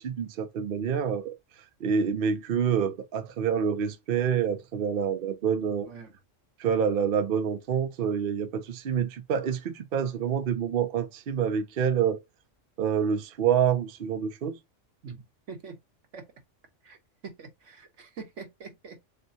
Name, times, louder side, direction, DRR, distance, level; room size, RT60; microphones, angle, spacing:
voice 1, 0.0-1.4 1.8-5.9 6.6-12.2 12.8-14.6, right 7 dB, 55° right, 0.7 m, -27 dB
voice 2, 15.0-15.8 16.1-16.2 16.8-17.0 17.2-19.0, right 5 dB, 75° right, 1.4 m, -44 dB
6.5 x 2.2 x 2.7 m
omnidirectional pair, 1.3 m